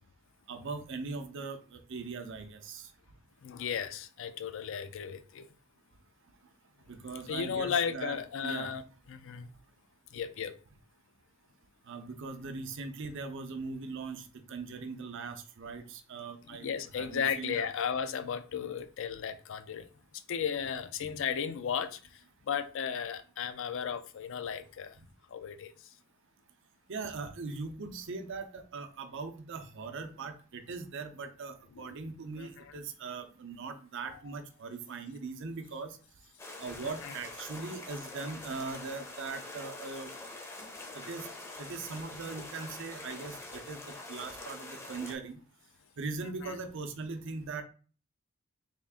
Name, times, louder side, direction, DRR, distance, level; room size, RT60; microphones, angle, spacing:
voice 1, 0.5-2.9 6.9-8.2 8.4-8.7 11.9-14.2 14.5-16.7 17.0-17.7 26.9-36.0 36.6-40.1 40.9-41.3 41.6-43.8 44.1-45.4 46.0-47.6, right 4 dB, 60° right, 0.6 m, -40 dB
voice 2, 3.4-5.5 7.3-8.8 9.1-9.5 10.1-10.6 16.5-25.0 25.3-25.9 31.7-31.9 32.4-32.8 34.1-34.4 36.8-37.2 46.4-46.5, left 7 dB, 65° left, 0.4 m, -35 dB
sound 1, 36.4-45.1, left 2 dB, 15° left, 0.6 m, -45 dB
3.6 x 2.4 x 3.5 m
head